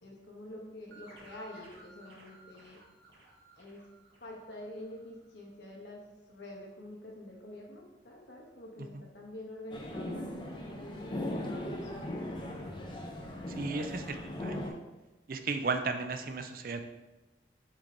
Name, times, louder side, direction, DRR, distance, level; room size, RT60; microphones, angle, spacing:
voice 1, 0.0-2.8 3.6-3.8 4.2-6.0 6.3-12.2, left 1 dB, 80° left, -1 dB, 1.3 m, -47 dB
sound 1, 0.9-5.2, right 2 dB, 70° right, 1.5 m, -57 dB
sound 2, 9.7-14.7, left 1 dB, 25° left, 0.7 m, -38 dB
voice 2, 13.6-14.6 15.3-16.8, right 4 dB, 50° right, 7 dB, 0.5 m, -35 dB
7.3 x 3.4 x 3.8 m, 1.1 s
head